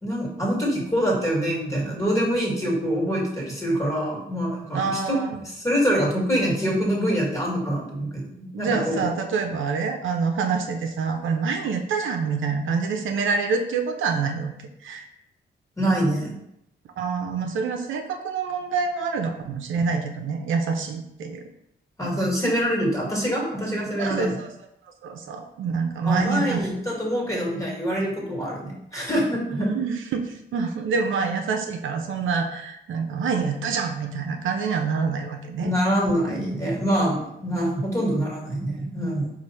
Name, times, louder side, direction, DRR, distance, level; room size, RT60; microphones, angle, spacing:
voice 1, 0.0-9.1 15.8-16.3 22.0-24.3 26.0-29.7 35.6-39.3, equal, 15° left, -3 dB, 1.7 m, -25 dB
voice 2, 4.7-5.4 8.5-14.5 14.8-15.1 17.0-21.4 24.0-24.5 25.0-26.7 29.5-35.7, right 5 dB, 75° right, 3 dB, 0.6 m, -26 dB
4.7 x 2.6 x 4.2 m, 0.80 s
cardioid pair, 95°, 20 cm